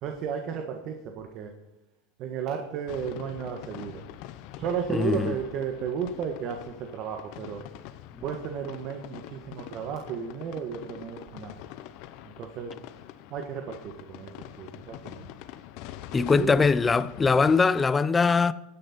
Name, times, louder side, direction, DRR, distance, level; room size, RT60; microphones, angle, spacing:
voice 1, 0.0-1.5 2.2-4.0 4.6-7.6 8.2-11.6 12.2-12.7 13.3-14.3 14.6-15.2 16.2-16.5, right 7 dB, 45° right, 1.6 m, -34 dB
sound 1, 2.9-17.9, left 13 dB, 55° left, 0.9 m, -44 dB
voice 2, 4.9-5.4 16.1-18.5, left 4 dB, 15° left, 0.5 m, -22 dB
16.0 x 9.8 x 4.4 m
supercardioid pair, 130°, 0 cm